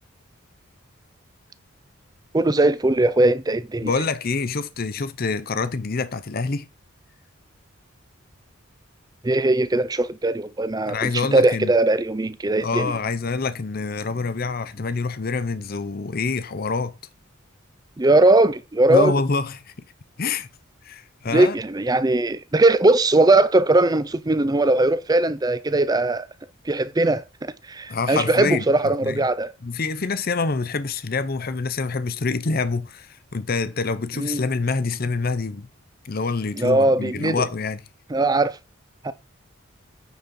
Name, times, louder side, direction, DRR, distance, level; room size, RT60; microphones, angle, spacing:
voice 1, 2.3-3.9 9.2-12.9 18.0-19.1 21.3-26.3 26.7-29.5 34.2-34.4 36.6-37.5 38.1-38.6 39.0-39.1, right 2 dB, 20° right, 0.5 m, -20 dB
voice 2, 3.8-6.7 10.9-11.7 12.6-16.9 18.9-19.7 20.2-20.5 20.8-21.6 27.9-28.6 29.0-29.2 29.6-35.7 36.0-37.9, left 4 dB, 45° left, 0.6 m, -26 dB
9.4 x 4.3 x 5.3 m
head